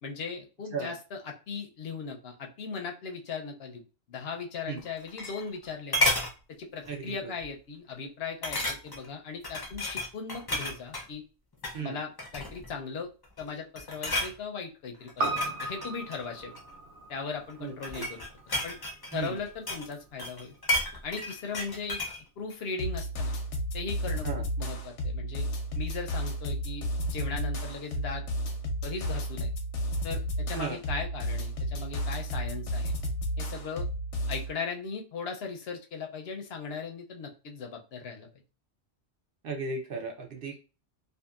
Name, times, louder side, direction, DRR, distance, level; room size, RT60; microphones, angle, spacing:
voice 1, 0.0-3.8 4.1-6.0 6.5-11.2 11.8-13.1 13.4-16.5 17.1-18.3 18.6-18.8 19.1-20.5 21.0-22.0 22.4-23.3 23.7-25.5 25.7-28.2 28.8-29.5 30.0-32.9 33.4-33.9 34.3-38.3, left 5 dB, 65° left, 3 dB, 0.7 m, -38 dB
sound 1, 4.8-5.6 5.9-6.3 6.8-7.1 7.4-7.5 8.4-9.1 9.4-11.1 11.5-11.8 12.2-12.7 13.2-13.5 13.7-14.3 15.1-16.7 17.5-19.9 20.2-22.2 22.5-22.6, left 1 dB, 30° left, 0.4 m, -32 dB
voice 2, 6.9-7.3 11.7-12.0 17.6-18.0 19.1-19.4 24.2-24.4 30.6-30.8 39.4-40.6, right 4 dB, 60° right, 1 dB, 0.7 m, -35 dB
Piano, 15.2-19.7 20.0-20.1, right 2 dB, 85° right, 1.0 m, -37 dB
sound 2, 22.8-34.5, equal, 85° left, 1.0 m, -32 dB
2.6 x 2.4 x 2.3 m, 0.33 s
omnidirectional pair, 1.2 m